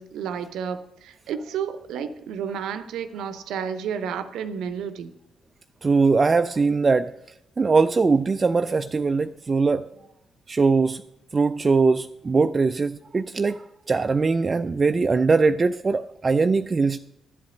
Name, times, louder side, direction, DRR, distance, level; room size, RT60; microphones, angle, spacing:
voice 1, 0.0-5.1, right 7 dB, 65° right, 0.7 m, -31 dB
voice 2, 5.8-7.1 7.6-9.9 10.5-11.0 11.3-17.0, right 4 dB, 35° right, 0.3 m, -21 dB
12.0 x 7.9 x 5.0 m
figure-of-eight pair, 40°, 0 cm